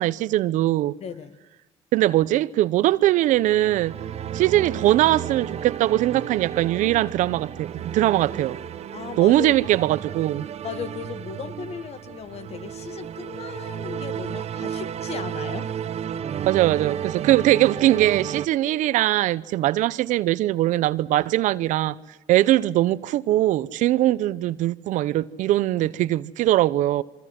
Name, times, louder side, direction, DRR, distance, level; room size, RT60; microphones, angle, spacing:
voice 1, 0.0-0.9 1.9-3.9 4.3-8.6 9.2-10.5 16.4-22.0 22.3-27.0, right 15 dB, 70° right, 0.9 m, -21 dB
voice 2, 1.0-1.4 8.9-9.6 10.6-15.8, left 7 dB, 50° left, 1.8 m, -36 dB
sound 1, 3.0-18.5, right 9 dB, 50° right, 1.3 m, -33 dB
27.5 x 24.5 x 7.7 m
supercardioid pair, 80°, 13 cm